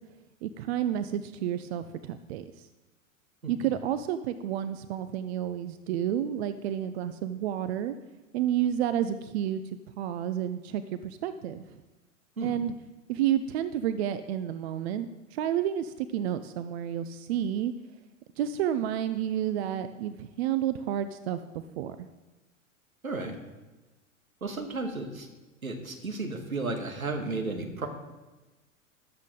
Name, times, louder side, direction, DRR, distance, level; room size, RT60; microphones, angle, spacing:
voice 1, 0.4-2.4 3.5-8.0 8.3-9.6 10.0-11.6 12.4-12.7 13.1-17.7 18.4-21.4 21.8-22.0, right 10 dB, 50° right, 12 dB, 0.7 m, -30 dB
voice 2, 23.0-23.4 24.4-25.3 25.6-27.9, right 3 dB, 85° right, 4 dB, 2.0 m, -33 dB
13.5 x 12.0 x 3.9 m, 1.1 s
figure-of-eight pair, 90°, 41 cm